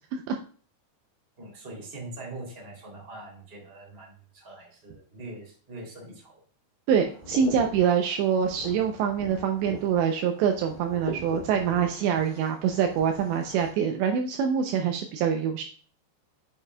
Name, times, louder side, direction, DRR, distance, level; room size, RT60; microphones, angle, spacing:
voice 1, 1.4-6.4, right 2 dB, 15° right, -2 dB, 2.3 m, -43 dB
sound 1, 6.9-13.7, equal, 30° left, 0.7 m, -42 dB
voice 2, 6.9-15.6, right 7 dB, 80° right, 4 dB, 2.7 m, -25 dB
8.2 x 6.9 x 2.3 m, 0.42 s
omnidirectional pair, 5.4 m